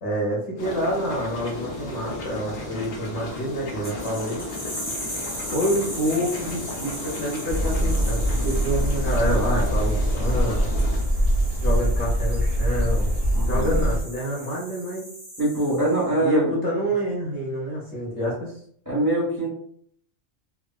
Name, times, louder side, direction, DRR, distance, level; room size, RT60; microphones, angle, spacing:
voice 1, 0.0-4.4 5.5-10.7 11.6-13.1 13.4-15.1 16.2-18.5, equal, 50° left, -4 dB, 1.0 m, -27 dB
sound 1, 0.6-11.0, left 2 dB, 75° left, 1.1 m, -35 dB
sound 2, 3.8-16.1, equal, 10° left, 0.7 m, -38 dB
sound 3, 7.5-14.0, equal, 60° right, 0.5 m, -23 dB
voice 2, 13.3-13.7 15.4-16.5 18.8-19.5, right 1 dB, 15° right, -5 dB, 1.0 m, -23 dB
3.5 x 2.1 x 2.2 m, 0.62 s
omnidirectional pair, 1.4 m